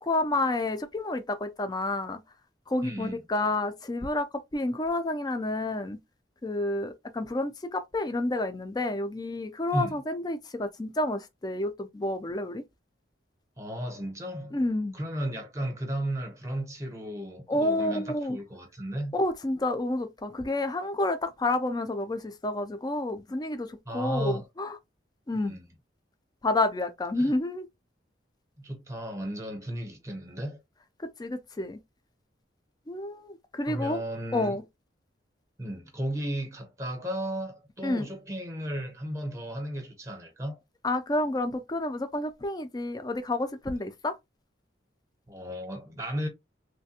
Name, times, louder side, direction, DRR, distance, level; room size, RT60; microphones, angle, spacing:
voice 1, 0.0-2.2 2.7-4.3 4.5-6.0 6.4-12.6 14.5-15.0 17.5-18.4 19.1-24.7 25.3-25.5 26.4-27.7 31.2-31.8 32.9-34.0 34.3-34.6 37.8-38.1 40.8-44.1, left 2 dB, 20° left, 0.4 m, -29 dB
voice 2, 2.8-3.2 9.7-9.9 13.6-14.6 14.9-19.1 23.9-24.4 25.3-25.6 27.2-27.3 28.6-30.6 33.7-34.6 35.6-40.6 45.3-46.3, right 1 dB, 15° right, 0.8 m, -34 dB
3.2 x 2.2 x 2.8 m
head